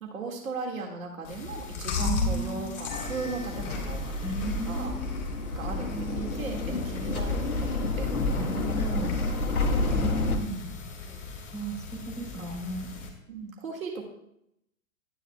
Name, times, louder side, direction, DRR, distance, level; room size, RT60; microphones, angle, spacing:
voice 1, 0.0-4.0 4.6-4.9 5.5-5.9 6.2-8.1 9.7-10.2 11.0-11.2 12.2-12.6 13.3-14.0, right 4 dB, 70° right, 0 dB, 1.9 m, -37 dB
Chewing mastication, 1.2-13.1, left 4 dB, 55° left, 3.3 m, -37 dB
voice 2, 2.0-3.2 4.2-5.2 5.9-6.5 8.4-9.1 9.9-10.8 11.5-12.9, right 2 dB, 5° right, -3 dB, 2.8 m, -35 dB
sound 1, 2.9-10.4, left 2 dB, 85° left, 1.2 m, -30 dB
11.5 x 9.7 x 2.2 m, 0.78 s
figure-of-eight pair, 110°, 43 cm